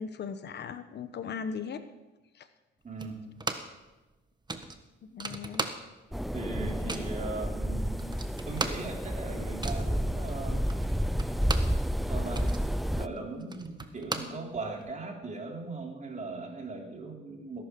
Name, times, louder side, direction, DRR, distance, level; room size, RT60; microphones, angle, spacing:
voice 1, 0.0-1.8 2.3-2.5 5.0-5.7, left 6 dB, 60° left, 11 dB, 1.2 m, -38 dB
voice 2, 2.8-3.2 6.3-8.1 8.5-10.6 12.1-12.5 12.9-17.6, right 3 dB, 40° right, 1 dB, 3.7 m, -39 dB
sound 1, 3.0-3.8 4.1-4.2 4.5-6.2 6.4-7.2 7.7-7.8 8.0-11.8 12.1-14.9, right 3 dB, 20° right, 1.4 m, -37 dB
sound 2, 6.1-13.1, equal, ahead, 0.6 m, -30 dB
19.0 x 11.5 x 5.4 m, 1.1 s
cardioid pair, 90°, 20 cm